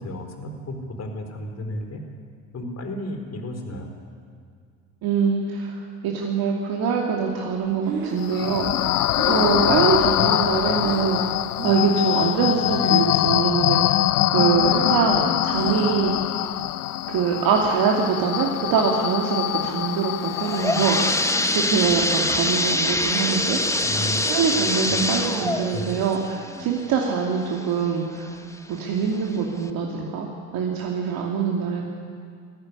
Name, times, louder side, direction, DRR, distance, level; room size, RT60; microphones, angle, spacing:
voice 1, 0.0-2.0 2.5-3.9 23.8-25.5 25.7-25.8, left 1 dB, 35° left, 4 dB, 4.2 m, -33 dB
voice 2, 5.0-9.0 9.2-11.2 11.6-14.0 14.3-16.1 17.1-21.3 21.5-23.6 24.3-28.3 28.7-30.3 30.5-31.8, right 6 dB, 55° right, -1 dB, 2.8 m, -24 dB
Breathing, 7.6-11.2 11.5-12.0 12.3-13.3 13.6-16.2, right 5 dB, 70° right, 5.5 m, -36 dB
sound 1, 8.2-21.6, left 15 dB, 80° left, 0.7 m, -23 dB
sound 2, 20.2-27.8 28.3-28.4 29.1-29.2 29.7-29.8, left 2 dB, 5° left, 1.5 m, -24 dB
21.0 x 14.5 x 9.9 m, 2.2 s
hypercardioid pair, 65°, 44 cm